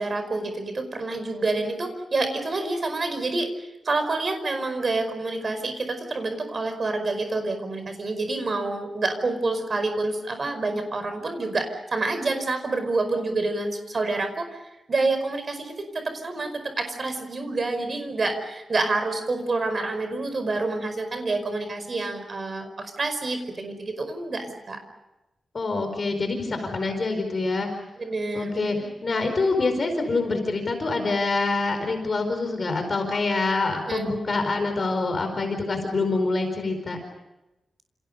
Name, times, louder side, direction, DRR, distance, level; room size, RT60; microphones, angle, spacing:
voice 1, 0.0-14.6 14.9-24.8 28.0-28.9 33.9-34.1, right 3 dB, 35° right, 8 dB, 5.0 m, -28 dB
voice 2, 25.5-27.7 28.3-37.0, left 3 dB, 35° left, 6 dB, 4.7 m, -26 dB
29.5 x 29.0 x 5.3 m, 0.97 s
wide cardioid pair, 180°, 0 cm